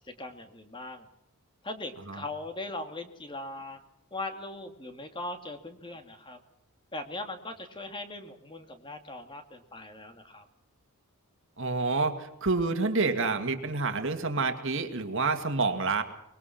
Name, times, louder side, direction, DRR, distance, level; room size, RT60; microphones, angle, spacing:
voice 1, 0.1-1.1 1.6-3.8 4.1-6.4 6.9-10.4, left 2 dB, 20° left, 6 dB, 2.3 m, -40 dB
voice 2, 11.6-16.0, right 3 dB, 55° right, 7 dB, 2.3 m, -28 dB
24.0 x 22.0 x 5.9 m, 0.84 s
head